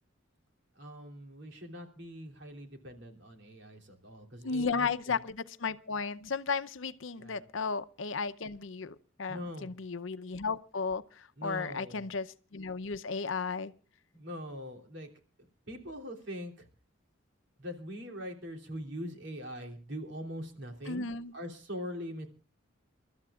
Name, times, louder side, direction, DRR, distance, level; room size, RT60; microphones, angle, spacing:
voice 1, 0.8-5.2 7.2-7.5 9.3-9.7 11.4-12.1 14.1-15.1 15.7-16.7 17.6-21.0 21.3-22.3, equal, 60° right, 3.2 m, -42 dB
voice 2, 4.4-11.0 11.4-12.3 12.5-13.7 20.9-21.3, left 4 dB, 70° left, 0.7 m, -34 dB
29.0 x 13.0 x 2.4 m
head